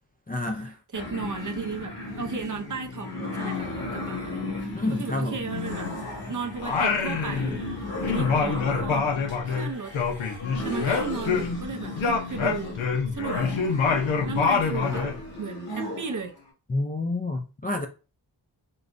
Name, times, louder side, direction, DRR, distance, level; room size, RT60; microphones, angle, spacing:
voice 1, 0.3-0.8 4.7-5.4 16.7-17.9, left 2 dB, 20° left, 0.3 m, -28 dB
sound 1, 0.9-16.3, left 2 dB, 50° left, 1.6 m, -35 dB
voice 2, 0.9-4.6 5.0-5.9 6.3-10.0 10.6-12.8 13.1-13.4 14.3-15.1 15.4-16.4, right 5 dB, 45° right, 0.5 m, -35 dB
Singing, 6.6-7.8 8.0-11.7 12.0-15.2, left 5 dB, 90° left, 0.6 m, -26 dB
3.9 x 2.1 x 2.5 m
wide cardioid pair, 65°, 46 cm